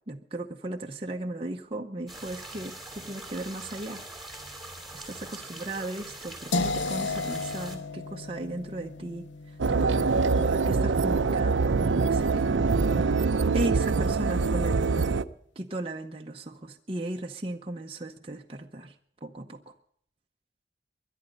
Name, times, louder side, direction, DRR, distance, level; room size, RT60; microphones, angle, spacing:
voice 1, 0.1-4.0 4.9-12.7 13.1-13.2 13.5-15.2 15.6-19.0 19.2-19.7, right 1 dB, 30° right, 2 dB, 0.7 m, -36 dB
sound 1, 2.1-7.8, right 1 dB, ahead, 2.5 m, -43 dB
sound 2, 6.5-12.4, left 3 dB, 75° left, 0.7 m, -35 dB
sound 3, 9.6-15.2, right 4 dB, 85° right, 0.6 m, -24 dB
21.5 x 11.0 x 5.3 m, 0.67 s
head